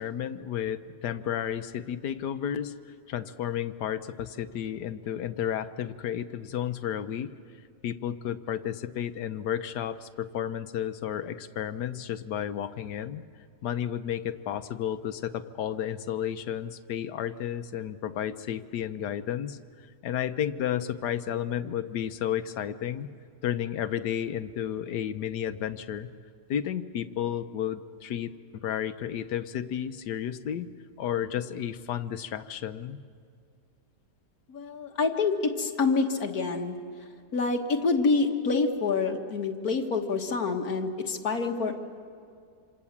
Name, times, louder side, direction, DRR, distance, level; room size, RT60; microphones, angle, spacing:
voice 1, 0.0-2.7 3.1-7.3 7.8-13.2 13.6-19.6 20.0-23.1 23.4-26.1 26.5-28.3 28.6-30.7 31.0-33.0, left 10 dB, 80° left, 10 dB, 1.4 m, -32 dB
voice 2, 34.5-36.8 37.3-41.7, left 4 dB, 60° left, 4 dB, 1.9 m, -27 dB
27.0 x 26.5 x 7.3 m, 2.3 s
omnidirectional pair, 1.8 m